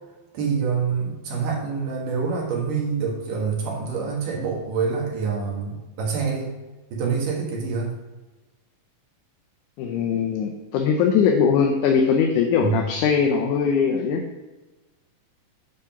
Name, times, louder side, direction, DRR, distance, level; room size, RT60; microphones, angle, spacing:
voice 1, 0.3-6.5 6.9-7.9 12.6-12.9, right 5 dB, 85° right, -2 dB, 3.2 m, -26 dB
voice 2, 9.8-14.2, left 6 dB, 80° left, 2 dB, 2.2 m, -21 dB
9.3 x 3.8 x 5.8 m, 1.2 s
omnidirectional pair, 3.6 m